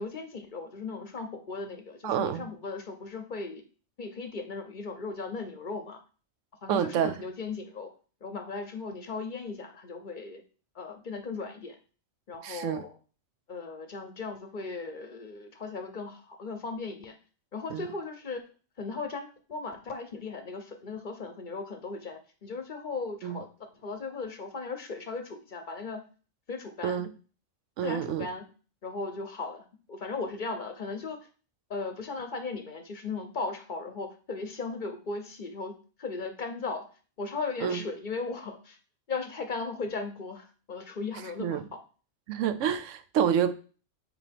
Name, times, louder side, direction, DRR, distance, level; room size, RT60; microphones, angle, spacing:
voice 1, 0.0-3.6 4.0-6.0 6.6-7.9 8.2-10.4 10.7-11.8 12.3-12.9 13.5-17.2 17.5-18.4 18.8-26.0 26.5-27.0 27.8-28.4 28.8-31.3 31.7-36.9 37.2-38.8 39.1-41.8, left 4 dB, 45° left, 0.8 m, -37 dB
voice 2, 2.0-2.4 6.7-7.2 12.4-12.8 17.7-17.9 23.2-23.4 26.8-27.1 27.8-28.3 37.6-37.8 41.4-41.7 42.3-43.5, right 9 dB, 85° right, 1.0 m, -28 dB
7.1 x 4.1 x 3.5 m
omnidirectional pair, 1.3 m